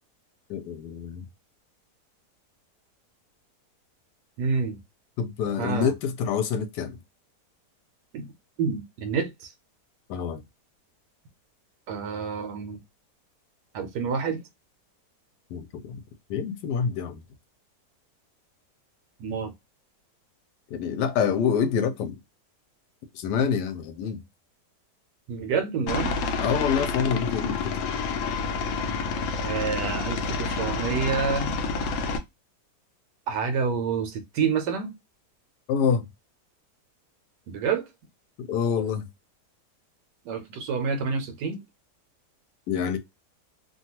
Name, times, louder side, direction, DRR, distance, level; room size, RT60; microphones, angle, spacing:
voice 1, 0.5-1.2 5.2-7.0 10.1-10.4 15.5-16.0 16.3-17.2 20.7-22.2 23.1-24.2 26.4-27.8 35.7-36.1 38.4-39.1 42.7-43.0, left 7 dB, 85° left, 1.2 m, -26 dB
voice 2, 4.4-4.8 5.6-5.9 8.1-8.3 8.6-9.5 11.9-12.8 13.7-14.4 19.2-19.5 25.3-26.1 29.4-31.5 33.3-35.0 37.5-37.9 40.2-41.6, right 5 dB, 85° right, 1.3 m, -28 dB
Aircraft, 25.9-32.2, left 4 dB, 70° left, 0.8 m, -28 dB
3.0 x 2.3 x 2.8 m
omnidirectional pair, 1.8 m